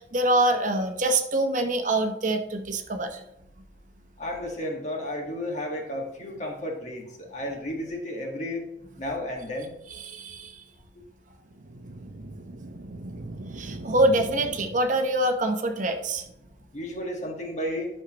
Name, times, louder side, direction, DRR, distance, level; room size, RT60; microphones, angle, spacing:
voice 1, 0.0-3.2 10.0-10.6 13.5-16.2, right 1 dB, 45° right, 5 dB, 0.8 m, -25 dB
voice 2, 4.2-8.6 9.0-9.7 16.7-17.9, left 1 dB, 40° left, 1 dB, 1.6 m, -32 dB
sound 1, 11.4-15.3, right 2 dB, 75° right, 0.7 m, -40 dB
11.5 x 6.4 x 2.9 m, 0.83 s
head